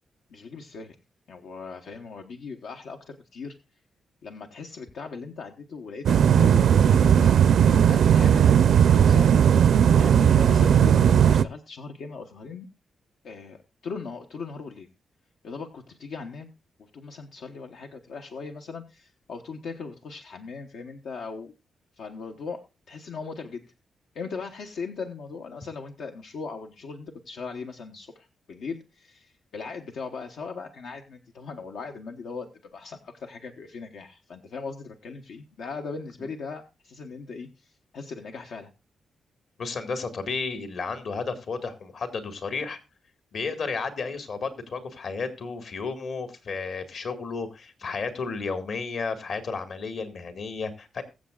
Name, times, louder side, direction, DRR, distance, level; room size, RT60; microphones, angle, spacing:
voice 1, 0.3-1.0 1.3-3.5 4.2-7.4 7.7-9.3 10.0-12.7 13.2-14.9 15.4-16.5 16.8-21.5 22.0-23.6 24.1-38.7, left 4 dB, 80° left, 3 dB, 1.1 m, -39 dB
sound 1, 6.1-11.4, right 8 dB, 70° right, 0.5 m, -17 dB
voice 2, 39.6-42.8 43.3-51.0, left 4 dB, 60° left, 9 dB, 1.8 m, -32 dB
22.0 x 7.5 x 2.4 m, 0.27 s
wide cardioid pair, 135°, 0 cm